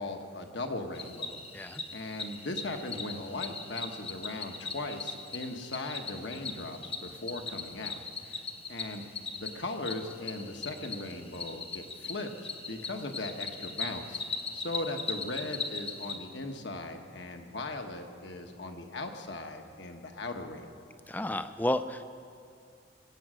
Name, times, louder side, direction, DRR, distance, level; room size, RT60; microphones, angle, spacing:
voice 1, 0.0-1.4 1.9-8.0 8.2-8.4 8.7-9.0 9.4-14.2 14.5-20.9, left 2 dB, 65° left, 4 dB, 1.2 m, -38 dB
Cricket, 0.9-16.1, left 4 dB, 30° left, 0.9 m, -39 dB
voice 2, 21.1-22.0, left 1 dB, 10° left, 11 dB, 0.4 m, -31 dB
22.0 x 8.7 x 6.2 m, 2.4 s
head